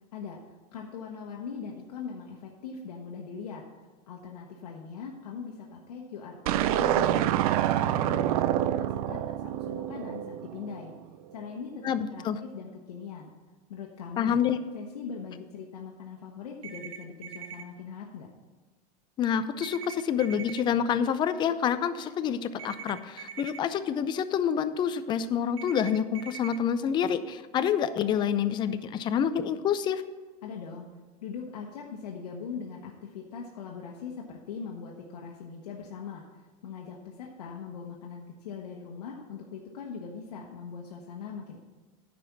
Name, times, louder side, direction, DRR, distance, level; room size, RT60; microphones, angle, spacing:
voice 1, 0.7-3.6 4.1-10.9 11.3-13.3 13.7-14.4 14.7-18.3 30.4-30.9 31.2-36.3 36.6-41.6, left 6 dB, 90° left, -1 dB, 1.2 m, -41 dB
sound 1, 6.5-10.8, right 12 dB, 70° right, 0.6 m, -27 dB
voice 2, 11.8-12.4 14.2-14.6 19.2-30.0, left 8 dB, 25° left, 12 dB, 0.4 m, -27 dB
sound 2, 16.6-17.6 19.6-20.6 22.6-23.6 25.6-26.6, right 8 dB, 30° right, 0.8 m, -42 dB
9.6 x 5.1 x 7.1 m, 1.3 s
supercardioid pair, 140°, 20 cm